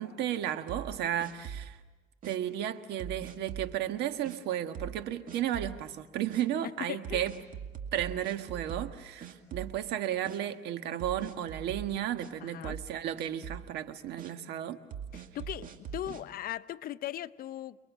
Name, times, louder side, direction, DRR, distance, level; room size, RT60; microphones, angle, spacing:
voice 1, 0.0-1.8 2.2-7.4 7.9-14.8, right 11 dB, 80° right, 1.5 m, -33 dB
sound 1, 0.7-1.8 2.2-2.4 3.0-3.7 4.2-4.4 4.7-5.0 5.3-5.8 6.3-6.4 7.0-9.0 9.2-9.9 10.2-10.4 11.0-12.3 12.6-12.9 13.2-13.7 14.2-14.3 14.9-16.2, right 8 dB, 55° right, 2.3 m, -42 dB
voice 2, 6.9-7.3 12.4-12.8 15.1-17.8, left 12 dB, 60° left, 0.7 m, -39 dB
29.0 x 22.0 x 7.4 m
cardioid pair, 110°, 17 cm